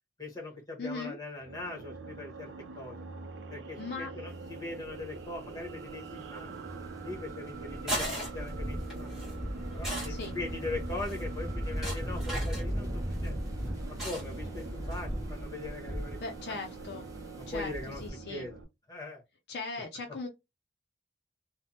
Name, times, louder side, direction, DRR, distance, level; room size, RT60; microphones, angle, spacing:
voice 1, 0.2-3.0 3.5-6.5 7.0-8.1 8.3-9.1 9.7-13.4 14.0-16.2 16.5-16.6 17.5-18.0 18.3-18.6 18.9-19.2, left 2 dB, 20° left, 1.1 m, -40 dB
voice 2, 0.8-1.2 3.8-4.1 10.1-10.4 16.2-17.1 17.5-18.5 19.5-20.3, left 3 dB, 65° left, 0.4 m, -39 dB
sound 1, 1.4-18.6, right 3 dB, 85° right, 0.5 m, -44 dB
sound 2, 4.4-18.1, equal, 20° right, 0.5 m, -39 dB
sound 3, 7.5-15.5, equal, 5° right, 1.3 m, -40 dB
3.3 x 2.1 x 2.7 m
head